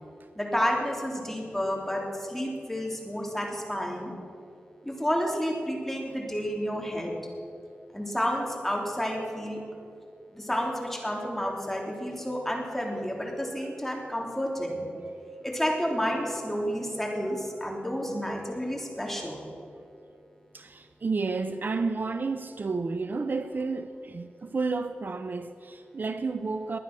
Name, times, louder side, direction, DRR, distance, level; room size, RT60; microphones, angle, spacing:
voice 1, 0.3-4.1 4.8-7.1 7.9-9.6 10.3-14.8 15.4-19.5, equal, 5° left, 3.3 m, -30 dB
voice 2, 18.1-18.4 18.7-18.9 20.5-26.8, right 4 dB, 55° right, 0.6 m, -32 dB
20.0 x 10.0 x 6.2 m
wide cardioid pair, 80°, 4 cm